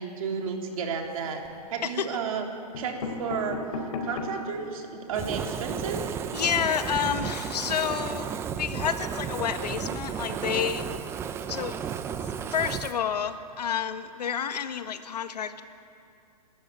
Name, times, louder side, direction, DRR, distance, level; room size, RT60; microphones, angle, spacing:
voice 1, 0.0-1.4 1.7-2.5 2.8-3.6 4.0-6.2, right 6 dB, 55° right, 2 dB, 3.5 m, -32 dB
sound 1, 1.0-1.6 2.4-2.5 2.7-4.5 5.0-5.1 5.3-5.4 5.7-5.9, left 3 dB, 55° left, 3.9 m, -35 dB
Fire, 5.1-13.0, right 7 dB, 10° right, 0.5 m, -33 dB
voice 2, 6.3-8.3 8.6-10.9 11.5-11.8 12.5-15.6, left 8 dB, 75° left, 9 dB, 1.6 m, -29 dB
28.5 x 13.0 x 9.0 m, 2.6 s
hypercardioid pair, 150°, 21 cm